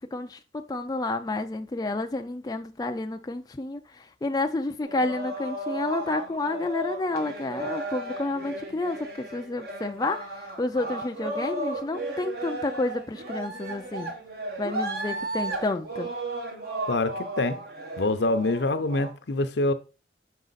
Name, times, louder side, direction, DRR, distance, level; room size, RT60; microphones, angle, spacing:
voice 1, 0.1-14.1 14.6-16.1, left 2 dB, 20° left, 0.4 m, -30 dB
sound 1, 4.8-19.1, right 2 dB, 60° right, 1.3 m, -35 dB
voice 2, 16.9-17.6 18.0-19.7, left 2 dB, 70° left, 0.7 m, -25 dB
6.3 x 4.8 x 4.0 m
head